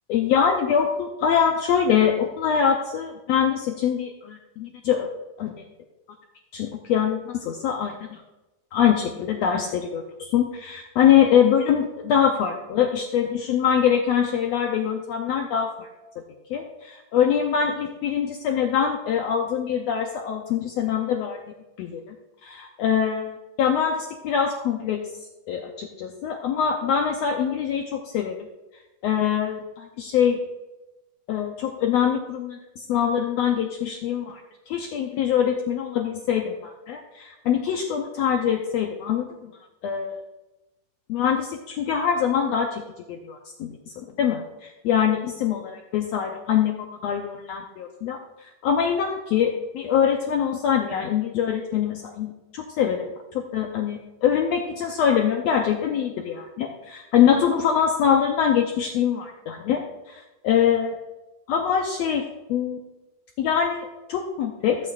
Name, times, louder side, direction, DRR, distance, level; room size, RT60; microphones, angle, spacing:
voice 1, 0.1-5.1 5.4-5.5 6.5-7.9 8.7-15.9 16.5-21.4 21.8-22.0 22.4-25.0 25.5-28.4 29.0-30.4 31.3-34.4 34.7-39.3 39.8-40.2 41.1-42.8 43.1-46.7 47.0-60.9 61.5-62.2 62.5-62.8 63.4-64.8, left 8 dB, 85° left, 3 dB, 1.5 m, -23 dB
15.5 x 8.4 x 2.4 m, 1.0 s
omnidirectional pair, 3.8 m